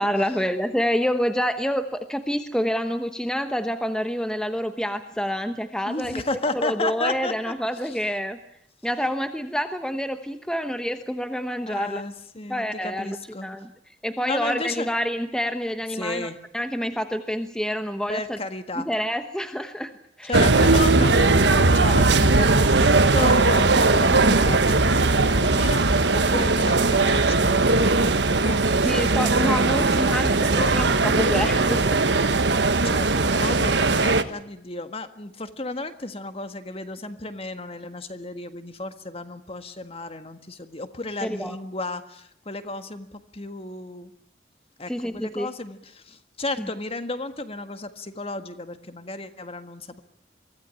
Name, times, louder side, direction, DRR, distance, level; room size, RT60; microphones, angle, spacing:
voice 1, 0.0-6.2 6.5-8.4 8.8-12.0 12.5-13.2 13.4-13.7 14.0-18.4 18.8-19.9 20.2-20.3 24.1-24.8 28.8-32.0 41.2-41.6 44.9-45.5 46.6-46.7, equal, 5° left, 8 dB, 1.1 m, -27 dB
voice 2, 5.8-7.3 7.8-8.0 11.7-13.6 14.2-14.9 15.9-16.4 18.1-18.9 20.3-30.7 32.6-44.1 44.8-50.0, left 2 dB, 30° left, 10 dB, 1.7 m, -33 dB
sound 1, 20.3-34.2, right 3 dB, 70° right, 1.4 m, -19 dB
24.0 x 16.5 x 10.0 m, 0.72 s
head